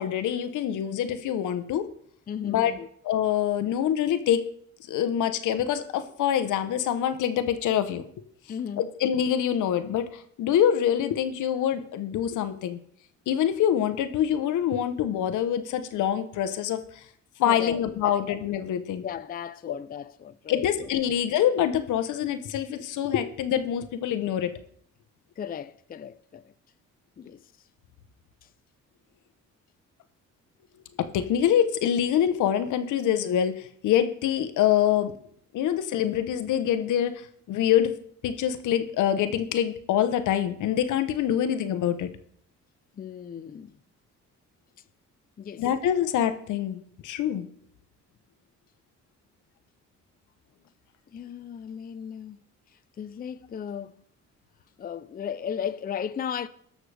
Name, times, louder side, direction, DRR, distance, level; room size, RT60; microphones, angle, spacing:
voice 1, 0.0-1.9 2.4-2.7 3.0-4.4 4.9-8.0 8.8-12.8 13.3-16.8 17.4-19.0 20.5-24.5 31.0-35.2 35.5-37.9 38.2-42.1 45.6-47.5, left 10 dB, 80° left, 0.9 m, -25 dB
voice 2, 2.3-2.9 8.5-8.9 17.4-18.3 19.0-20.9 25.4-26.5 27.2-27.5 28.4-28.5 43.0-43.8 45.4-45.6 51.1-52.4 52.7-54.0 54.8-56.5, left 8 dB, 30° left, 0.5 m, -36 dB
19.5 x 6.5 x 3.3 m
cardioid pair, 90°, 30 cm